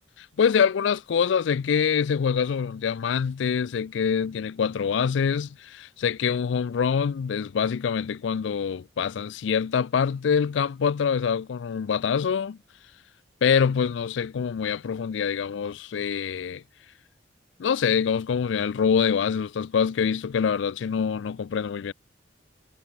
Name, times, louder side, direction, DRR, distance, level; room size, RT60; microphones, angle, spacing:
voice 1, 0.4-12.6 13.4-16.6 17.6-21.9, left 6 dB, 80° left, 0.4 m, -25 dB
head